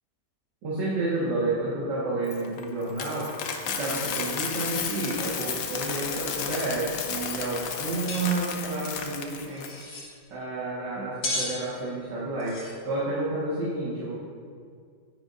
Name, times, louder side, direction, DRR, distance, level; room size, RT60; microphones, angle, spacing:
voice 1, 0.6-3.3 3.7-9.6 10.3-14.1, right 2 dB, 80° right, -9 dB, 2.2 m, -30 dB
Coin (dropping), 2.3-9.7, left 6 dB, 65° left, 1.0 m, -33 dB
sound 1, 8.1-8.2 8.5-8.6 9.5-10.1 11.2-11.6 12.4-12.7, left 1 dB, 50° left, 1.6 m, -33 dB
9.5 x 9.5 x 2.5 m, 2.1 s
omnidirectional pair, 1.9 m